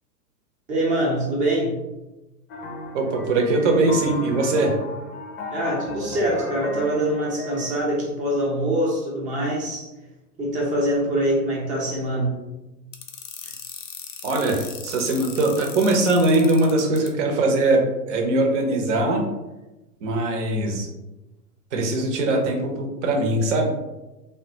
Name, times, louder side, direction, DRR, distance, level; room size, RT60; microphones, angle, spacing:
voice 1, 0.7-1.7 5.5-9.9 10.4-12.3, right 1 dB, 15° right, -4 dB, 0.7 m, -24 dB
sound 1, 2.5-7.8, left 2 dB, 40° left, 0.7 m, -35 dB
voice 2, 2.9-4.8 14.2-19.2 20.0-20.9 21.7-23.7, right 2 dB, 45° right, 2 dB, 0.8 m, -21 dB
sound 2, 12.9-17.1, left 7 dB, 85° left, 0.7 m, -37 dB
3.5 x 2.2 x 2.7 m, 1.0 s
figure-of-eight pair, 115°, 50 cm